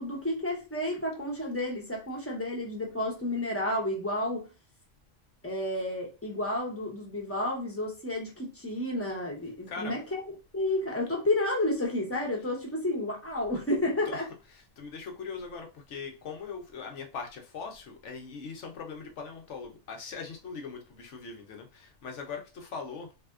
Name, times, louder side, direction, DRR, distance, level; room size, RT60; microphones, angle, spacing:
voice 1, 0.0-4.4 5.4-10.2 10.5-14.3, left 1 dB, 15° left, 0.8 m, -31 dB
voice 2, 14.5-23.1, left 5 dB, 80° left, 1.1 m, -40 dB
3.4 x 2.7 x 2.4 m
omnidirectional pair, 1.2 m